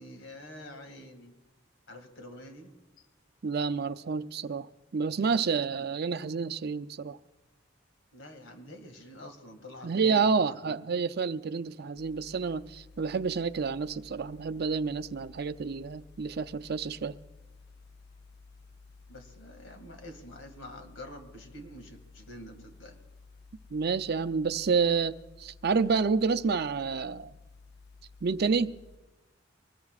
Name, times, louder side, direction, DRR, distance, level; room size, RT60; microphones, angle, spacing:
voice 1, 0.0-1.4 1.9-3.1 8.1-10.2 10.5-10.8 19.1-23.0, left 1 dB, 85° left, 2.2 m, -47 dB
voice 2, 3.4-7.2 9.8-17.2 23.7-27.3 28.2-28.8, right 5 dB, 55° right, 0.5 m, -29 dB
sound 1, 12.0-29.0, left 4 dB, 60° left, 0.7 m, -54 dB
24.5 x 20.0 x 2.4 m
head